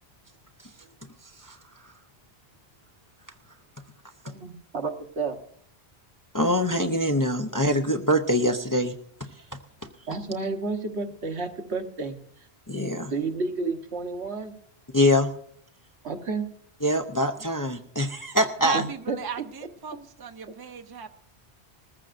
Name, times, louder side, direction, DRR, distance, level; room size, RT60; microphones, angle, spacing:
voice 1, 4.2-5.4 10.1-12.2 13.1-14.5 16.0-16.5 18.7-19.2, right 4 dB, 80° right, 5 dB, 1.4 m, -31 dB
voice 2, 6.3-8.9 12.7-13.1 14.9-15.3 16.8-18.8, left 1 dB, 25° left, 4 dB, 0.5 m, -24 dB
voice 3, 18.6-21.1, right 5 dB, 25° right, 8 dB, 0.6 m, -35 dB
20.0 x 14.5 x 2.5 m, 0.63 s
omnidirectional pair, 1.1 m